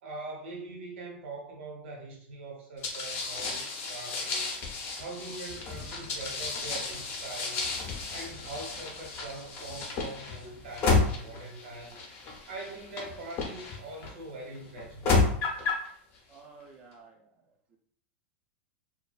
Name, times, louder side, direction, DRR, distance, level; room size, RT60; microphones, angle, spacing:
voice 1, 0.0-4.5 4.9-7.7 8.1-12.0 12.5-15.3, right 2 dB, 80° right, -1 dB, 1.0 m, -42 dB
sound 1, 2.8-14.1 14.8-15.9, left 4 dB, 35° left, 0.6 m, -32 dB
voice 2, 16.3-17.2 17.7-17.8, right 4 dB, 25° right, 0 dB, 0.3 m, -52 dB
2.5 x 2.2 x 2.3 m, 0.63 s
supercardioid pair, 145°, 6 cm